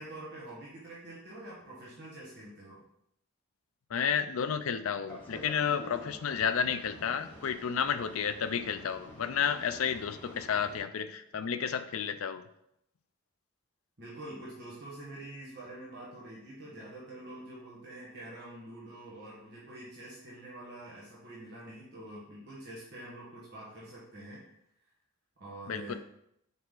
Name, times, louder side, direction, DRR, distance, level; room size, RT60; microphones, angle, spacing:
voice 1, 0.0-2.8 14.0-24.4 25.4-26.0, right 1 dB, 55° right, -7 dB, 1.6 m, -46 dB
voice 2, 3.9-12.4 25.7-25.9, left 7 dB, 85° left, 10 dB, 0.5 m, -31 dB
Boat Water vehicle, 5.1-10.8, left 1 dB, 10° left, 2.6 m, -49 dB
5.5 x 4.8 x 3.9 m, 0.76 s
head